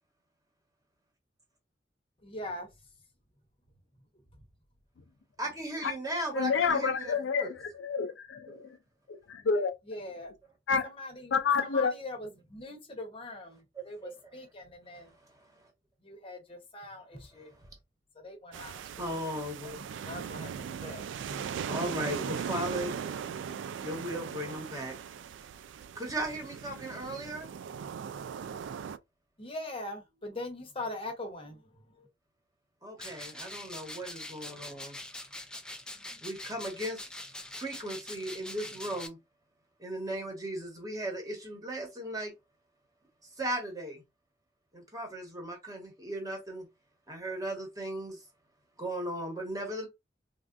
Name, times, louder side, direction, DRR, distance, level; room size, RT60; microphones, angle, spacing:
voice 1, 2.2-2.7 9.9-10.3 10.8-11.3 11.6-15.1 16.0-17.5 18.1-18.8 20.0-21.0 29.4-32.1, left 2 dB, 30° left, 0.9 m, -42 dB
voice 2, 5.4-7.5 8.5-8.6 14.0-14.1 19.0-19.8 21.7-23.2 23.8-24.9 25.9-27.5 32.8-35.0 36.2-37.1 37.5-39.2 39.8-42.3 43.4-44.0 44.7-46.7 47.1-48.2 48.8-49.9, right 1 dB, 20° right, 1.2 m, -37 dB
voice 3, 6.2-8.8 9.1-9.7 10.7-10.9 11.3-11.9, left 5 dB, 75° left, 0.4 m, -29 dB
sound 1, 18.5-29.0, right 7 dB, 75° right, 0.3 m, -39 dB
sound 2, 33.0-39.1, left 1 dB, 5° left, 0.3 m, -44 dB
3.4 x 2.4 x 2.5 m
head